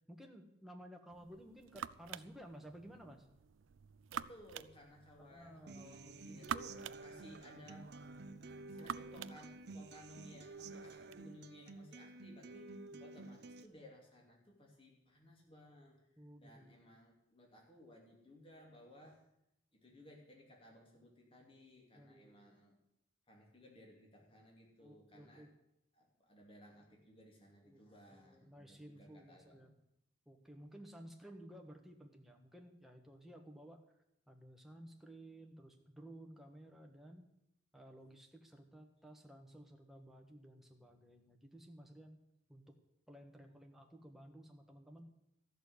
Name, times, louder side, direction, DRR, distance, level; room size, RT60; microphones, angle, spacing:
voice 1, 0.1-3.3 5.3-5.8 12.9-13.0 16.2-16.7 21.9-22.5 24.8-25.5 27.6-27.8 28.1-29.7 30.3-33.8 34.3-37.3 37.7-42.2 42.5-42.8 43.1-45.1, right 1 dB, ahead, 2 dB, 1.4 m, -55 dB
sound 1, 1.1-11.2, right 8 dB, 90° right, 0.4 m, -49 dB
voice 2, 4.1-7.9 8.7-16.0 16.4-19.2 19.7-22.8 23.3-25.5 25.9-29.8 43.4-43.6, left 1 dB, 30° left, 0 dB, 2.9 m, -59 dB
Human voice / Acoustic guitar, 5.7-13.7, right 3 dB, 60° right, 0.8 m, -51 dB
13.5 x 6.7 x 9.7 m, 0.81 s
head